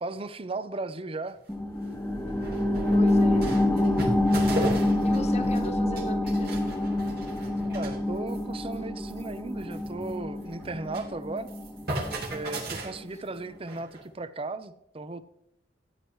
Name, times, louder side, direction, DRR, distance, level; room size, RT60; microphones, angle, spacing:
voice 1, 0.0-1.4 7.6-11.5 12.3-15.2, right 3 dB, 30° right, 13 dB, 0.7 m, -36 dB
sound 1, 1.3-1.4 1.9-2.0 2.2-5.7 6.0-8.0 8.3-8.5 8.7-8.8 9.1-11.1 11.4-14.1, right 1 dB, 55° right, 2.8 m, -36 dB
sound 2, 1.5-12.6 13.0-13.1, left 1 dB, 5° left, 1.2 m, -27 dB
voice 2, 2.9-3.5 5.0-6.5, left 2 dB, 35° left, 7 dB, 1.3 m, -38 dB
14.5 x 9.5 x 3.2 m, 0.79 s
head